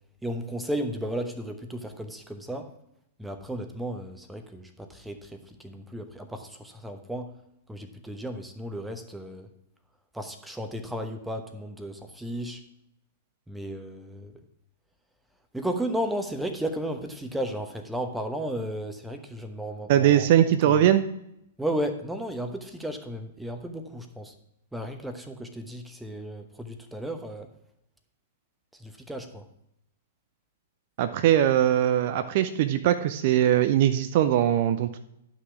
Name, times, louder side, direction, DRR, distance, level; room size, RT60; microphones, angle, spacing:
voice 1, 0.2-2.7 3.2-7.3 7.7-9.5 10.1-12.6 13.5-14.3 15.5-20.8 21.6-24.3 24.7-27.5 28.7-29.4, right 1 dB, 5° right, 6 dB, 1.0 m, -34 dB
voice 2, 19.9-21.0 31.0-35.0, right 11 dB, 45° right, 10 dB, 0.6 m, -21 dB
11.5 x 5.9 x 4.7 m, 0.78 s
figure-of-eight pair, 105°, 0 cm